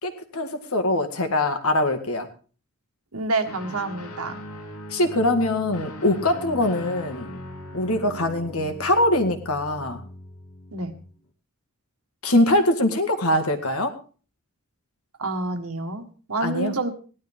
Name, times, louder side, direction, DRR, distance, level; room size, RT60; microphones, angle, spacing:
voice 1, 0.0-2.3 4.9-7.3 7.7-10.0 12.2-13.9 16.4-16.7, left 1 dB, 70° left, 7 dB, 1.9 m, -23 dB
voice 2, 3.1-4.4 10.7-10.9 15.2-16.9, right 3 dB, 75° right, 6 dB, 1.7 m, -28 dB
Guitar, 3.4-11.1, left 1 dB, 90° left, 2.5 m, -39 dB
17.5 x 11.5 x 3.7 m, 0.38 s
head